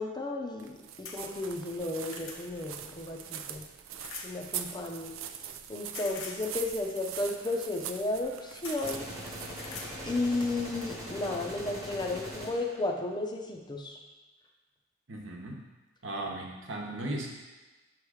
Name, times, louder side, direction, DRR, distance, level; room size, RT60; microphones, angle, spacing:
voice 1, 0.0-3.7 4.2-5.1 5.7-9.1 10.0-14.0, left 2 dB, 20° left, 2 dB, 0.6 m, -33 dB
sound 1, 0.6-10.5, right 9 dB, 85° right, 0.4 m, -43 dB
sound 2, 1.1-1.2 1.7-2.4 4.0-4.3 5.9-6.4 8.1-8.3 8.6-9.0 9.6-9.9 10.4-10.9 12.0-12.1 12.5-12.6, left 4 dB, 80° left, 0.8 m, -43 dB
sound 3, 8.8-12.8, equal, 15° right, 1.0 m, -41 dB
voice 2, 15.1-15.6 16.0-17.3, right 1 dB, 70° right, 0 dB, 1.0 m, -36 dB
7.5 x 3.1 x 4.8 m, 1.2 s
head